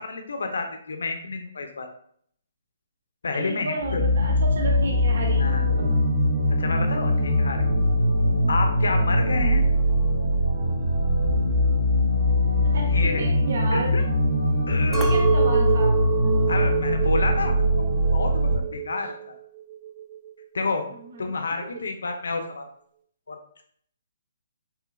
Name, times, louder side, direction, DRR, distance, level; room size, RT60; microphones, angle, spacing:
voice 1, 0.0-1.9 3.2-4.0 5.4-5.7 6.5-7.6 8.5-9.7 12.9-13.3 13.7-14.0 14.7-15.1 16.5-17.6 18.1-19.2 20.5-20.9 21.2-22.7 23.3-23.4, left 3 dB, 85° left, 5 dB, 0.5 m, -29 dB
voice 2, 3.3-5.9 8.4-8.6 12.6-13.9 14.9-16.0 20.9-21.3, right 2 dB, 65° right, 1 dB, 0.6 m, -32 dB
sound 1, 3.8-18.6, left 1 dB, 85° right, 1.0 m, -22 dB
Chink clink, 14.9-19.3 19.7-20.3, right 10 dB, 10° right, 0.4 m, -28 dB
3.2 x 3.0 x 2.3 m, 0.63 s
hypercardioid pair, 165°, 0 cm